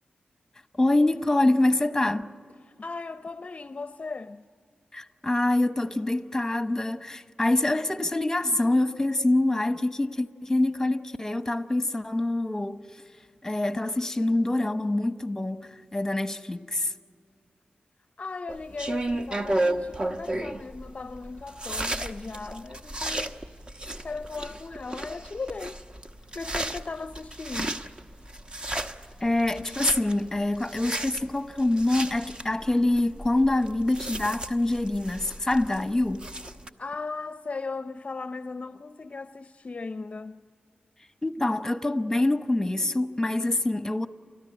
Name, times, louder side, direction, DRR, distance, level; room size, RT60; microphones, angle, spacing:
voice 1, 0.8-2.3 4.9-12.8 13.4-16.9 29.2-36.3 41.2-44.1, left 2 dB, 15° left, 1.0 m, -25 dB
voice 2, 2.8-4.4 18.2-23.4 24.0-25.8 26.3-27.8 36.8-40.4, left 4 dB, 45° left, 0.6 m, -37 dB
sound 1, 18.5-36.7, right 1 dB, 30° right, 1.0 m, -34 dB
30.0 x 13.5 x 9.9 m
wide cardioid pair, 85°, 3 cm